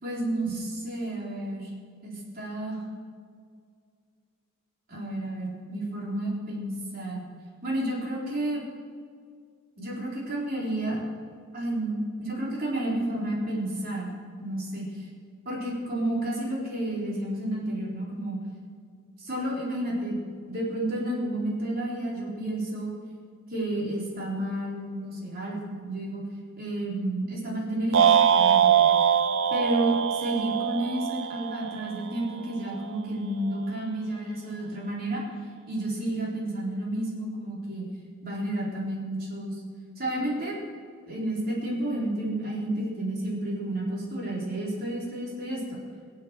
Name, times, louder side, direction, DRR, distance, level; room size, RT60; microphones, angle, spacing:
voice 1, 0.0-1.7 2.0-2.8 4.9-7.3 7.6-8.6 9.8-11.1 11.5-14.8 15.5-18.4 19.2-22.9 23.5-26.2 26.6-28.9 29.5-35.2 35.7-37.9 38.2-39.6 40.0-40.6 41.1-45.8, right 1 dB, 45° right, -4 dB, 4.2 m, -31 dB
sound 1, 27.9-32.3, right 8 dB, 65° right, 0.8 m, -22 dB
22.0 x 7.6 x 7.6 m, 2.1 s
head